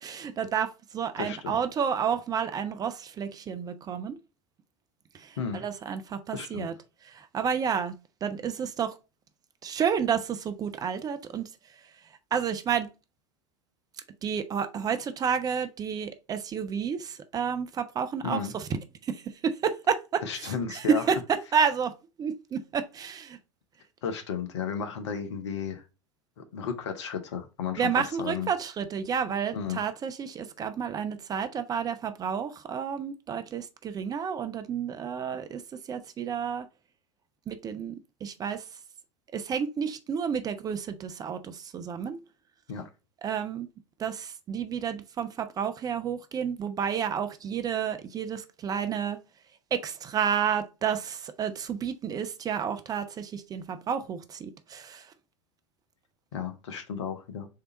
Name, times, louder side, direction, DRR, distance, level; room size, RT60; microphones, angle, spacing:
voice 1, 0.0-4.2 5.1-6.7 7.0-7.9 8.2-9.0 9.6-11.8 12.3-12.9 14.2-23.4 27.8-36.7 37.5-38.7 39.3-42.2 43.2-43.7 44.0-49.2 49.7-55.1, right 7 dB, 25° right, 0.5 m, -30 dB
voice 2, 1.2-1.6 5.4-5.6 6.3-6.7 18.2-18.5 20.2-21.0 24.0-25.8 26.4-28.5 29.5-29.8 42.7-42.9 56.3-57.5, left 6 dB, 60° left, 0.9 m, -33 dB
3.8 x 3.4 x 3.9 m
figure-of-eight pair, 80°, 16 cm